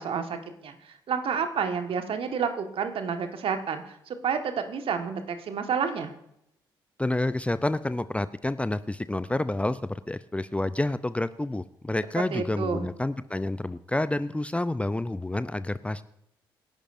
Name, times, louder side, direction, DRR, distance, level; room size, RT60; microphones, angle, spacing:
voice 1, 0.0-6.1 12.2-12.9, right 6 dB, 50° right, 6 dB, 1.7 m, -30 dB
voice 2, 7.0-16.0, left 2 dB, 10° left, 14 dB, 0.6 m, -29 dB
26.5 x 11.5 x 2.7 m, 0.79 s
figure-of-eight pair, 40°, 12 cm